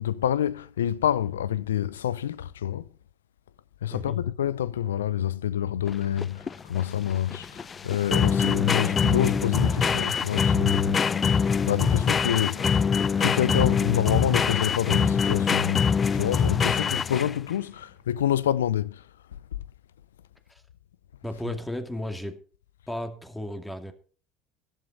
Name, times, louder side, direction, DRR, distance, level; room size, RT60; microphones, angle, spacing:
voice 1, 0.0-2.9 3.8-19.1, left 10 dB, 85° left, 0.5 m, -27 dB
sound 1, 5.9-17.5, left 6 dB, 30° left, 0.5 m, -24 dB
voice 2, 21.2-22.4 22.9-23.9, left 1 dB, 10° left, 2.4 m, -34 dB
14.0 x 11.5 x 4.0 m
hypercardioid pair, 70°, 0 cm